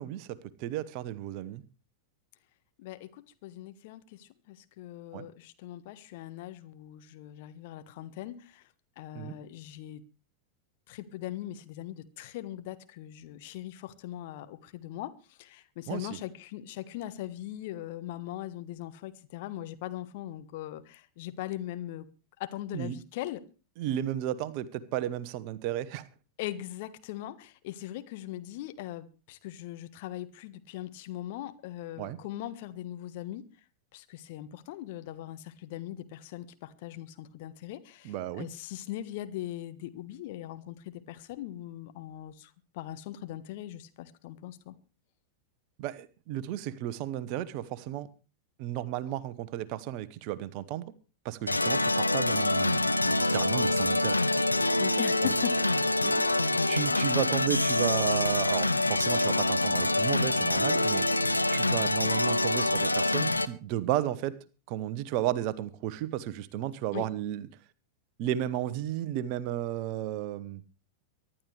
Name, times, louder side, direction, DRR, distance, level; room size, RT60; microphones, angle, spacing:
voice 1, 0.0-1.6 5.1-5.3 9.1-9.3 15.9-16.2 22.7-22.9 23.8-26.1 32.0-32.2 38.0-38.5 45.8-48.1 48.6-50.8 51.2-54.2 55.2-55.3 56.0-56.3 56.7-61.1 61.5-64.3 64.7-67.5 68.2-70.6, right 12 dB, 45° right, 1.0 m, -33 dB
voice 2, 2.8-8.6 9.0-10.0 10.9-22.1 22.4-23.4 26.4-33.4 33.9-44.7 54.8-56.0 66.9-67.1, left 13 dB, 50° left, 1.3 m, -40 dB
sound 1, 51.5-63.5, left 2 dB, 85° left, 0.8 m, -26 dB
24.5 x 11.5 x 3.3 m
figure-of-eight pair, 90°, 0 cm